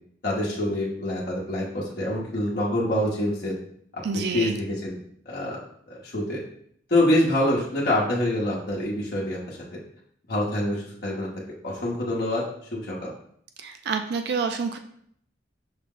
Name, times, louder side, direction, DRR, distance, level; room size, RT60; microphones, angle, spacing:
voice 1, 0.2-3.5 3.9-4.0 4.3-5.0 5.3-5.6 5.9-6.4 6.9-9.8 10.3-11.3 11.6-12.4 12.7-13.1, left 1 dB, 55° left, -5 dB, 0.8 m, -26 dB
voice 2, 4.0-4.6 13.6-14.8, right 5 dB, 60° right, 7 dB, 0.3 m, -28 dB
5.6 x 2.0 x 3.7 m, 0.66 s
head